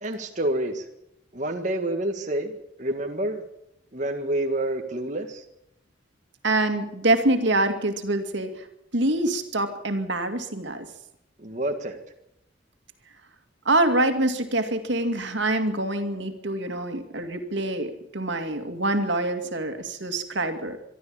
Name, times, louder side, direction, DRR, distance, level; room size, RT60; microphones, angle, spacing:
voice 1, 0.0-0.9 1.3-3.5 3.9-5.4 11.4-12.0, right 1 dB, 40° right, 3 dB, 1.7 m, -28 dB
voice 2, 6.4-8.7 8.9-10.9 13.7-20.8, right 2 dB, 70° right, 7 dB, 2.4 m, -25 dB
24.0 x 12.5 x 8.7 m, 0.83 s
head